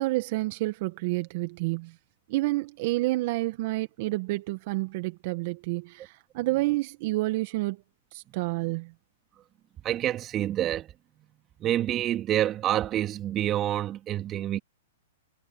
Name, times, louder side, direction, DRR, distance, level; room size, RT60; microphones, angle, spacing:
voice 1, 0.0-2.0 2.3-7.8 8.1-8.9, right 20 dB, 50° right, 1.7 m, -29 dB
voice 2, 9.8-10.9 11.6-14.6, right 12 dB, 30° right, 2.7 m, -27 dB
hypercardioid pair, 120°, 0 cm